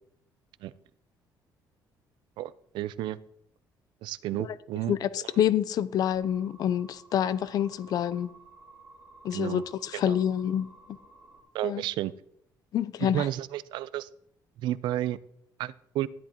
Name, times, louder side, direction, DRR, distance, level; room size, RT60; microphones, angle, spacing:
voice 1, 2.4-3.2 4.0-4.9 9.3-9.6 9.9-10.2 11.5-12.1 13.0-14.1 14.6-15.2 15.6-16.1, right 13 dB, 80° right, 0.4 m, -31 dB
voice 2, 4.9-8.3 9.2-11.0 11.6-11.8 12.7-13.3, left 10 dB, 55° left, 0.5 m, -27 dB
sound 1, 6.1-11.4, right 2 dB, 20° right, 2.0 m, -54 dB
13.0 x 10.5 x 3.0 m
cardioid pair, 145°, 8 cm